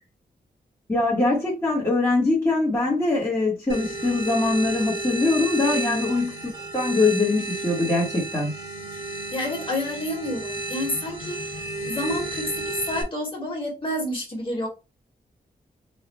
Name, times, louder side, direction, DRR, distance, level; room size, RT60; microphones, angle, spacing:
voice 1, 0.9-8.5, left 2 dB, 15° left, 1.1 m, -23 dB
sound 1, 3.7-13.0, right 2 dB, 35° right, 1.4 m, -32 dB
voice 2, 5.7-6.0 9.3-14.7, left 1 dB, 35° left, 1.5 m, -29 dB
3.2 x 2.3 x 4.0 m
wide cardioid pair, 175°, 16 cm